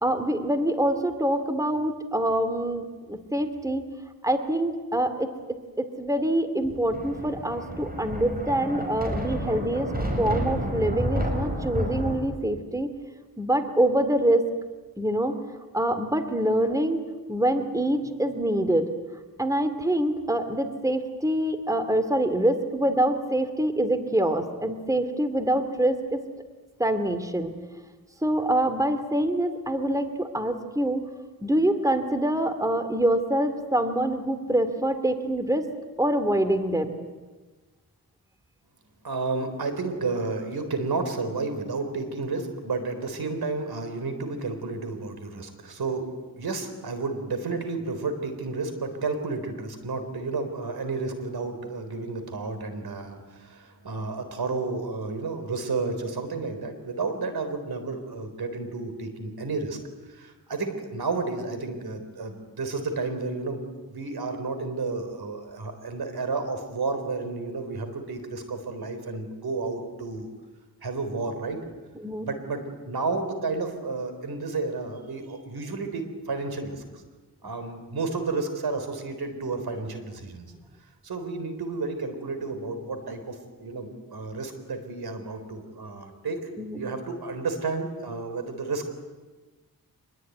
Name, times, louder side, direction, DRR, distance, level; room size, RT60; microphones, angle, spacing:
voice 1, 0.0-3.9 4.2-12.9 13.4-14.4 15.0-15.4 15.7-17.0 17.3-18.9 19.4-26.2 26.8-27.5 28.2-31.0 31.4-35.7 36.0-37.0 72.0-72.3 86.6-86.8, right 1 dB, 10° right, 9 dB, 2.4 m, -25 dB
Thunder, 6.6-12.1, equal, 25° right, 6.1 m, -30 dB
voice 2, 39.0-46.1 46.4-59.8 60.1-63.6 63.9-70.3 70.8-71.6 72.2-76.8 77.4-80.5 81.0-86.5 86.8-88.9, right 3 dB, 85° right, 8 dB, 3.9 m, -31 dB
26.0 x 21.0 x 9.4 m, 1.3 s
wide cardioid pair, 80°, 37 cm